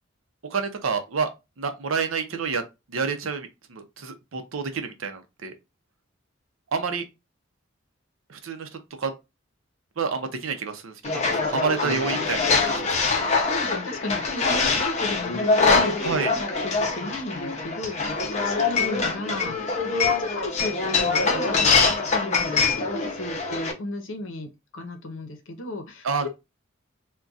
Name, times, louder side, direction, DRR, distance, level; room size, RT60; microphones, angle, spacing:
voice 1, 0.4-1.3 1.6-2.6 2.9-5.5 6.7-7.0 8.3-8.7 9.0-9.1 10.0-12.8 16.0-16.3 26.0-26.3, right 5 dB, 75° right, 0.6 m, -28 dB
sound 1, 11.0-23.7, left 4 dB, 35° left, 0.6 m, -24 dB
voice 2, 11.2-11.8 13.1-26.3, left 2 dB, 70° left, 0.7 m, -35 dB
2.4 x 2.2 x 3.8 m
head